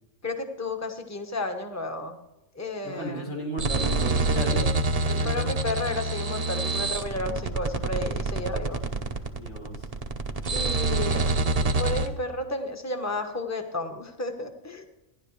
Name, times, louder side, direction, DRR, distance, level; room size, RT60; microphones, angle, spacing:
voice 1, 0.2-2.2 2.5-3.3 4.5-4.7 5.2-8.8 10.5-11.3 11.7-14.9, left 2 dB, 15° left, 5 dB, 1.1 m, -32 dB
voice 2, 2.8-4.8 5.1-5.4 9.4-9.9, right 1 dB, 85° left, -3 dB, 5.2 m, -34 dB
sound 1, 3.6-12.1, right 3 dB, 35° right, 0.8 m, -26 dB
15.0 x 11.0 x 3.2 m, 0.95 s
omnidirectional pair, 1.3 m